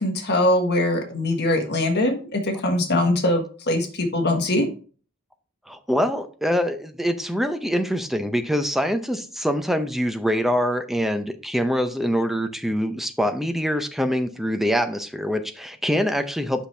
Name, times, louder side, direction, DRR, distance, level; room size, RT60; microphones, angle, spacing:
voice 1, 0.0-4.7, left 1 dB, 50° left, 4 dB, 1.4 m, -22 dB
voice 2, 5.7-16.7, equal, ahead, 8 dB, 0.6 m, -24 dB
5.9 x 5.8 x 3.3 m, 0.39 s
head